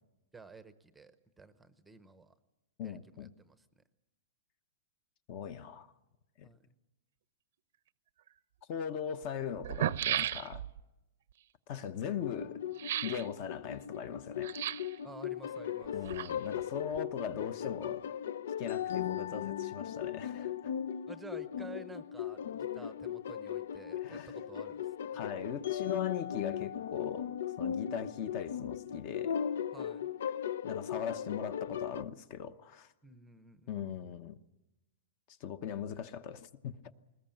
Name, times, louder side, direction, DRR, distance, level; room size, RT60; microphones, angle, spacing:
voice 1, 0.3-2.3 2.8-3.6 6.4-6.7 15.0-16.1 21.1-24.9 29.7-30.1 33.0-33.8 34.1-34.2, right 4 dB, 5° right, 0.8 m, -52 dB
voice 2, 2.8-3.3 5.3-5.9 6.4-6.5 8.7-10.6 11.7-12.6 13.0-14.8 15.9-18.1 18.6-20.7 24.0-24.4 25.1-27.3 27.6-29.4 30.6-32.9 33.7-34.4 35.3-36.8, left 8 dB, 35° left, 0.9 m, -40 dB
sound 1, 8.3-8.4 9.2-9.3 9.6-10.8 12.8-13.3 14.4-15.0 15.8-16.6 16.9-17.0, right 11 dB, 60° right, 0.7 m, -34 dB
sound 2, 12.2-32.0, left 9 dB, 70° left, 0.7 m, -38 dB
21.0 x 20.0 x 9.0 m
supercardioid pair, 175°, 0 cm